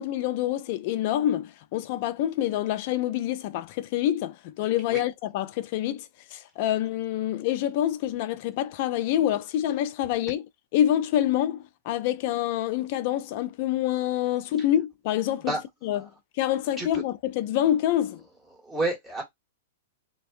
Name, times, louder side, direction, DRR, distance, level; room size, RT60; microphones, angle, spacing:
voice 1, 0.0-6.1 6.3-10.4 10.7-15.5 15.8-16.1 16.4-18.2, left 12 dB, 45° left, 0.4 m, -26 dB
voice 2, 18.6-19.2, right 2 dB, 15° right, 1.5 m, -29 dB
2.6 x 2.2 x 2.5 m
hypercardioid pair, 150°, 0 cm